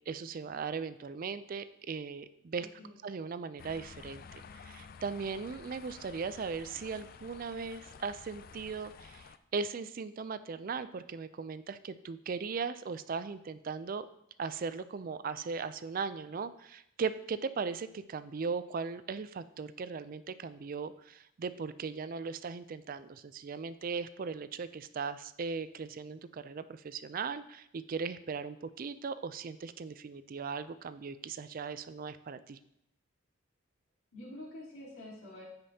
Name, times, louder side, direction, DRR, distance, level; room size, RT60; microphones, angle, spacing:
voice 1, 0.1-2.7 3.0-14.1 14.4-32.6, right 5 dB, 40° right, 14 dB, 0.3 m, -38 dB
voice 2, 2.6-3.0 34.1-35.4, left 1 dB, 90° left, -8 dB, 3.4 m, -47 dB
sound 1, 3.6-9.4, left 6 dB, 45° left, 0.3 m, -51 dB
14.5 x 5.2 x 2.8 m, 0.76 s
head